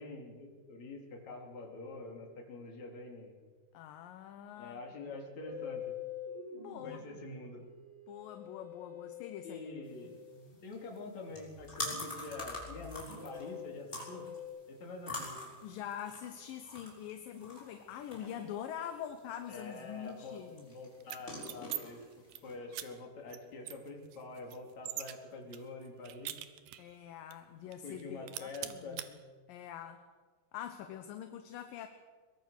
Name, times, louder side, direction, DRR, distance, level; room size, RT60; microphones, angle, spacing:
voice 1, 0.0-3.3 4.6-5.9 6.8-7.6 9.4-10.2 10.6-14.3 14.7-15.4 19.5-22.0 22.4-26.3 27.8-29.0, left 3 dB, 45° left, 1 dB, 4.3 m, -46 dB
voice 2, 3.7-4.8 6.6-7.0 8.1-9.6 10.0-10.1 15.6-20.7 26.8-29.0 29.5-30.0 30.5-31.9, left 9 dB, 70° left, 7 dB, 2.5 m, -44 dB
Musical instrument, 5.4-14.4, left 7 dB, 15° right, 6.9 m, -47 dB
sound 1, 9.9-22.6, left 2 dB, 15° left, 5.3 m, -46 dB
sound 2, 21.0-21.8 22.1-22.4 22.7-22.9 23.3-23.4 23.7-25.1 25.5-26.9 27.3-27.4 27.7-28.0 28.3-29.1, right 13 dB, 80° right, 2.9 m, -42 dB
22.5 x 22.0 x 6.5 m, 1.5 s
omnidirectional pair, 4.5 m